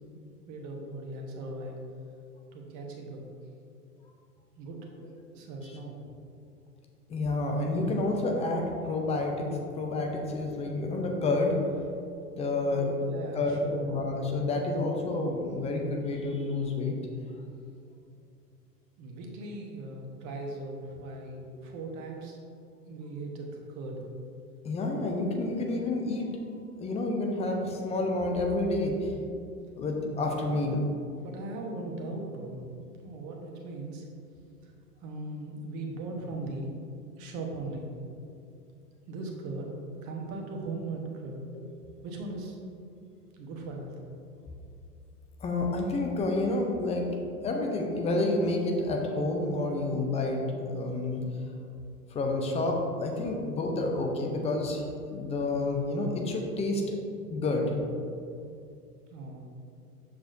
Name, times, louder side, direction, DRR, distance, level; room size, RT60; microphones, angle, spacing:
voice 1, 0.5-1.8 2.5-3.3 4.6-4.9 5.3-6.0 12.6-13.8 19.0-22.4 22.8-24.1 30.4-30.9 31.2-32.7 33.0-34.1 34.6-34.7 35.0-36.7 37.2-37.9 39.1-39.8 40.0-41.4 42.0-42.6 43.3-43.9 59.1-59.4, right 2 dB, 35° right, 1 dB, 1.2 m, -39 dB
voice 2, 7.1-11.6 12.3-12.9 13.4-17.0 24.6-26.3 26.8-29.1 29.8-30.8 45.4-47.1 47.4-51.2 52.1-57.0 57.3-57.7, left 2 dB, 15° left, 1 dB, 0.5 m, -29 dB
7.2 x 6.3 x 2.6 m, 2.5 s
figure-of-eight pair, 100°, 47 cm